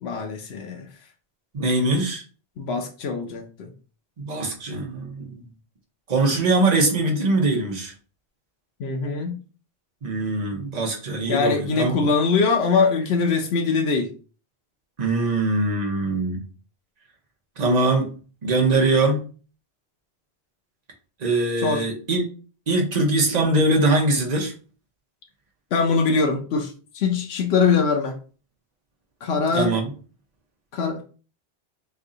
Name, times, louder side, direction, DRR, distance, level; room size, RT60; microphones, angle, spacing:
voice 1, 0.0-0.9 2.6-3.7 8.8-9.4 11.3-14.1 21.6-21.8 25.7-28.2 29.2-29.7 30.7-31.0, left 5 dB, 80° left, 0.9 m, -22 dB
voice 2, 1.5-2.2 4.2-5.4 6.1-7.9 10.0-12.1 15.0-16.4 17.6-18.1 18.4-19.2 21.2-22.2 22.7-24.5 29.5-29.9, right 2 dB, 45° right, 0.9 m, -22 dB
3.2 x 2.6 x 3.8 m
omnidirectional pair, 1.1 m